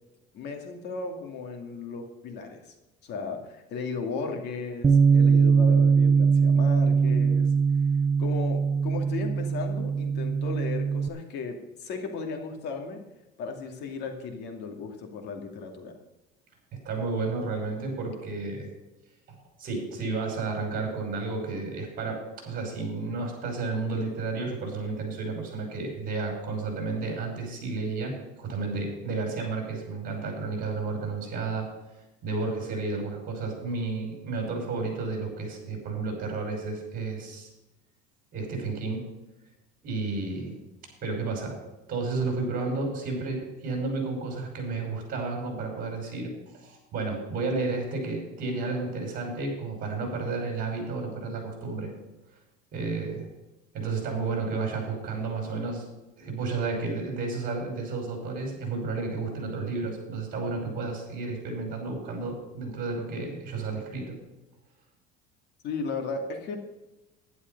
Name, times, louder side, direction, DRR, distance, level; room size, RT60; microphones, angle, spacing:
voice 1, 0.3-2.7 3.0-7.5 8.2-13.0 13.4-15.9 65.6-66.6, left 4 dB, 55° left, 3 dB, 2.5 m, -35 dB
Bass guitar, 4.8-11.1, right 5 dB, 15° right, 0.5 m, -21 dB
voice 2, 16.7-18.7 19.3-31.7 32.2-37.5 38.3-39.1 39.8-40.6 41.0-41.6 41.9-51.9 52.7-53.3 53.7-55.8 56.2-64.2, right 3 dB, 45° right, 2 dB, 5.6 m, -32 dB
11.5 x 11.0 x 5.4 m, 1.0 s
cardioid pair, 140°, 21 cm